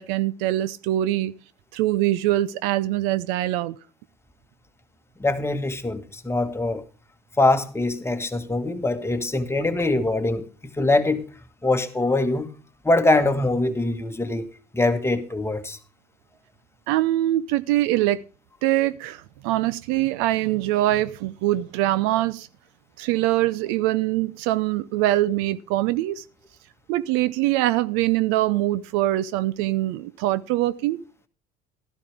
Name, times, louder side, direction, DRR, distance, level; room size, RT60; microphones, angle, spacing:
voice 1, 0.0-1.3 1.7-3.8 16.9-18.2 18.6-22.5 23.0-26.2 26.9-31.0, right 15 dB, 75° right, 0.7 m, -23 dB
voice 2, 5.2-6.8 7.4-10.5 10.7-11.3 11.6-12.5 12.8-15.8, left 2 dB, 10° left, 1.5 m, -23 dB
13.0 x 11.5 x 3.5 m
supercardioid pair, 85°, 20 cm